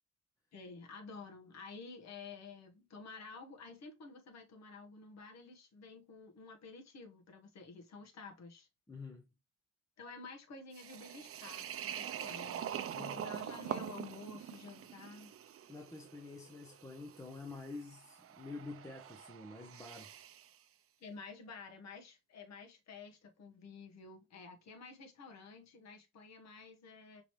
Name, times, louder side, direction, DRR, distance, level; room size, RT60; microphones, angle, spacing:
voice 1, 0.5-8.7 10.0-15.3 21.0-27.2, left 4 dB, 60° left, 1.3 m, -51 dB
voice 2, 8.9-9.2 12.9-13.3 15.7-20.1, left 3 dB, 10° left, 0.7 m, -48 dB
sound 1, 10.7-20.5, right 9 dB, 50° right, 0.6 m, -45 dB
5.3 x 2.9 x 3.1 m
cardioid pair, 90°, 30 cm